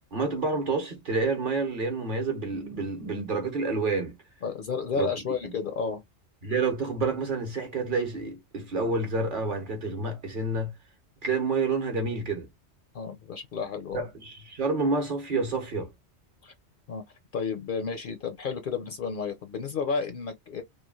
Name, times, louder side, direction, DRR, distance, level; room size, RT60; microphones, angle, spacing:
voice 1, 0.1-4.2 4.9-5.1 5.4-5.5 6.4-10.7 11.2-12.5 13.9-15.9, right 3 dB, 50° right, 0.9 m, -28 dB
voice 2, 4.4-6.0 12.9-14.1 16.4-16.5 16.9-17.0 17.3-20.6, left 5 dB, 60° left, 0.6 m, -32 dB
3.1 x 2.3 x 2.3 m
omnidirectional pair, 1.2 m